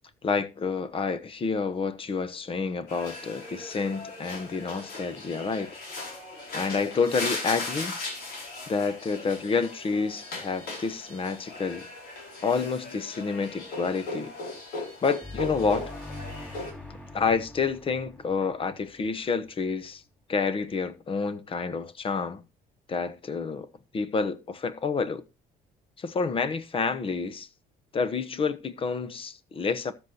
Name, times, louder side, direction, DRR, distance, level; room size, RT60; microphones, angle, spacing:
voice 1, 0.2-5.8 6.5-8.0 8.7-11.9 12.4-14.3 15.0-15.9 17.1-20.0 20.3-22.4 22.9-23.7 23.9-25.2 26.0-27.5 27.9-29.9, left 5 dB, 30° left, 1.0 m, -29 dB
sound 1, 2.9-16.7, left 2 dB, 70° left, 5.8 m, -38 dB
sound 2, 15.2-19.8, left 2 dB, 10° left, 4.5 m, -43 dB
13.0 x 8.0 x 2.9 m
cardioid pair, 110°, 17 cm